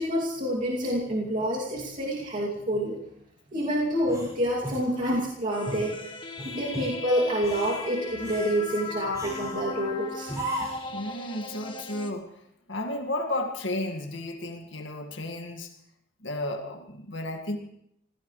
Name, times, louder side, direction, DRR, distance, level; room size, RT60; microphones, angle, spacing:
voice 1, 0.0-3.0 3.5-6.0 6.4-10.3, equal, 40° right, -4 dB, 2.7 m, -27 dB
sound 1, 4.1-5.2 5.6-5.9 6.4-6.9 7.3-7.8 8.2-8.6 9.1-9.6 10.3-10.9, right 1 dB, 15° right, 6.5 m, -36 dB
sound 2, 5.5-12.1, left 4 dB, 25° left, 1.7 m, -38 dB
voice 2, 10.9-12.4 12.7-15.7 16.2-17.6, left 1 dB, 80° left, 4 dB, 2.0 m, -33 dB
26.5 x 16.5 x 3.3 m, 0.74 s
head